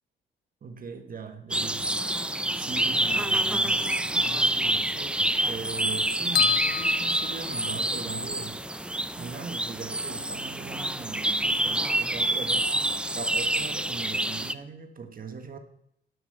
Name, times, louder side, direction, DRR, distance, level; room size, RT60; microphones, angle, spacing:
voice 1, 0.6-2.1 2.5-8.6 9.1-12.8 13.1-15.6, right 5 dB, 45° right, 7 dB, 1.5 m, -40 dB
sound 1, 1.5-14.5, right 1 dB, 5° right, 0.5 m, -27 dB
sound 2, 6.3-8.1, left 7 dB, 50° left, 0.9 m, -28 dB
10.5 x 8.0 x 8.0 m, 0.74 s
cardioid pair, 90°, 20 cm